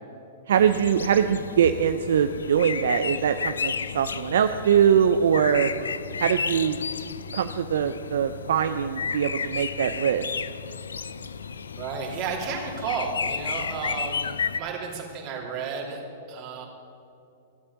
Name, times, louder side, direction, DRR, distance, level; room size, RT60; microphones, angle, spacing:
sound 1, 0.5-14.6, left 6 dB, 85° left, 0.5 m, -33 dB
voice 1, 0.5-5.7 6.2-6.8 7.3-10.2, right 8 dB, 70° right, 9 dB, 0.5 m, -22 dB
voice 2, 11.8-16.0 16.3-16.7, right 5 dB, 40° right, -1 dB, 3.2 m, -32 dB
14.5 x 8.6 x 7.0 m, 2.7 s
hypercardioid pair, 110°, 0 cm